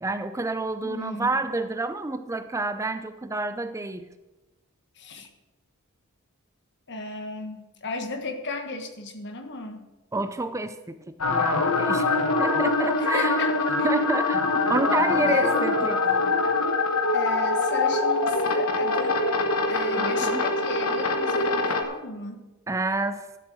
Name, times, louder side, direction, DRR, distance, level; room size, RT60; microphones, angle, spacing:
voice 1, 0.0-4.1 10.1-10.8 11.3-12.1 12.4-13.4 13.8-14.4 14.7-16.0 16.4-16.6 19.9-20.4 22.7-23.3, right 2 dB, 15° right, 9 dB, 0.4 m, -28 dB
voice 2, 0.8-1.3 4.9-5.3 6.9-9.9 13.0-14.1 15.1-15.5 17.1-19.3 19.7-22.4, left 2 dB, 55° left, 5 dB, 1.4 m, -35 dB
sound 1, 11.2-21.8, left 3 dB, 75° left, 1.2 m, -24 dB
12.5 x 7.5 x 6.2 m, 1.1 s
head